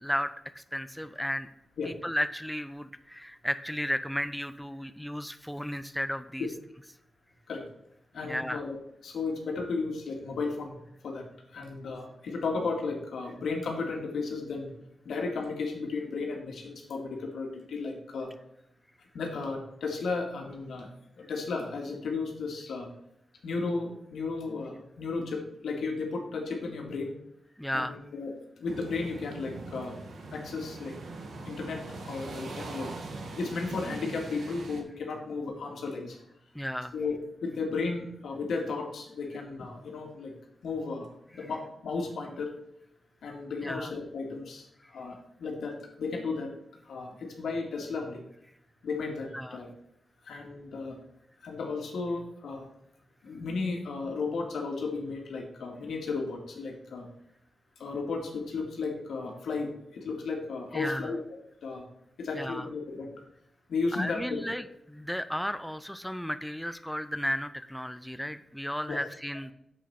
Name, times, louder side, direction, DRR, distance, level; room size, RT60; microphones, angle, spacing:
voice 1, 0.0-1.5 1.9-6.5 8.2-8.6 27.6-28.0 36.5-36.9 43.6-43.9 49.3-49.6 60.7-61.1 62.4-62.7 63.9-69.5, equal, ahead, 11 dB, 0.4 m, -34 dB
voice 2, 8.1-8.8 9.0-14.7 15.0-18.3 19.1-20.9 21.2-22.9 23.4-27.1 27.7-30.0 30.3-31.0 31.5-32.9 33.4-36.2 36.9-40.3 40.6-41.1 41.3-42.5 43.2-46.5 46.8-48.2 48.8-49.7 50.3-51.0 51.4-52.7 53.2-57.1 57.8-61.2 61.6-61.9 62.2-63.1 63.7-64.4 68.9-69.0, left 4 dB, 85° left, 2 dB, 2.1 m, -34 dB
sound 1, 28.7-34.8, right 3 dB, 80° right, 1.7 m, -41 dB
8.2 x 7.6 x 4.2 m, 0.77 s
wide cardioid pair, 135°, 0 cm